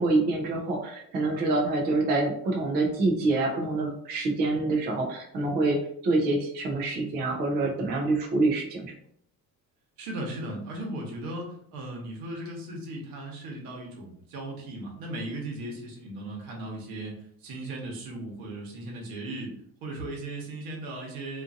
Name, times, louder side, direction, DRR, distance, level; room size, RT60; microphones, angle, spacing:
voice 1, 0.0-8.9, right 2 dB, 30° right, 0 dB, 0.3 m, -26 dB
voice 2, 10.0-19.5 19.8-21.4, right 1 dB, 80° right, 0 dB, 1.0 m, -37 dB
2.5 x 2.5 x 2.5 m, 0.66 s
cardioid pair, 180°, 35 cm